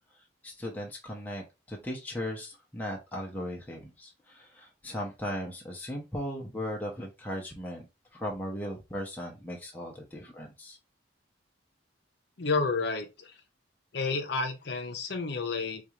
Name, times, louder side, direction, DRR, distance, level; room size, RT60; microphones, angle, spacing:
voice 1, 0.4-7.9 8.1-10.8, equal, 10° left, 0.7 m, -37 dB
voice 2, 12.4-13.4 13.9-15.8, left 4 dB, 55° left, 0.7 m, -30 dB
4.0 x 2.4 x 3.0 m
head